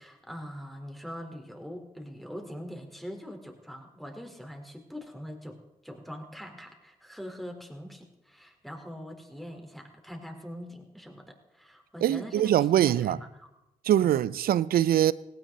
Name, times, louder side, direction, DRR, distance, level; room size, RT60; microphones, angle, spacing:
voice 1, 0.0-12.5 12.8-13.5 14.0-14.1, equal, ahead, 4.4 m, -43 dB
voice 2, 12.0-13.2 13.9-15.1, right 11 dB, 70° right, 0.6 m, -23 dB
18.0 x 17.0 x 4.2 m
hypercardioid pair, 45°, 16 cm